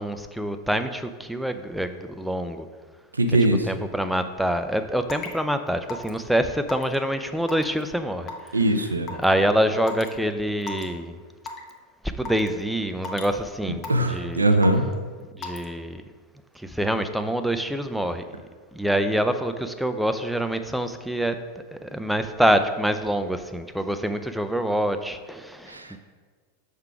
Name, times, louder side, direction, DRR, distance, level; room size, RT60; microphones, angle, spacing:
voice 1, 0.0-2.7 3.7-8.3 9.1-11.1 12.2-14.4 15.4-16.0 16.6-18.2 18.7-21.4 21.7-26.0, equal, ahead, 9 dB, 0.4 m, -26 dB
voice 2, 3.1-3.7 8.5-9.1 13.9-14.8 25.7-26.0, right 1 dB, 80° right, 6 dB, 0.5 m, -21 dB
Raindrop / Water tap faucet / Drip, 5.1-5.3 5.9-6.2 6.7-7.0 7.5-7.8 8.3-8.5 9.1-9.2 9.9-10.1 10.6-10.8 11.5-11.7 12.3-12.5 13.0-13.3 13.8-14.2 14.6-14.9 15.4-15.7, left 4 dB, 35° left, 0.7 m, -34 dB
5.6 x 3.7 x 5.8 m, 1.5 s
figure-of-eight pair, 90°, 0 cm